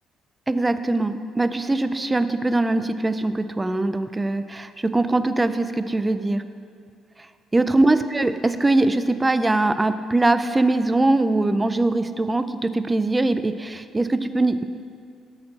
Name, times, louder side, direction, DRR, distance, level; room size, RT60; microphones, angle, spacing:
voice 1, 0.5-6.4 7.5-14.6, right 2 dB, 10° right, 11 dB, 0.3 m, -22 dB
12.5 x 4.4 x 6.4 m, 2.2 s
cardioid pair, 180°, 0 cm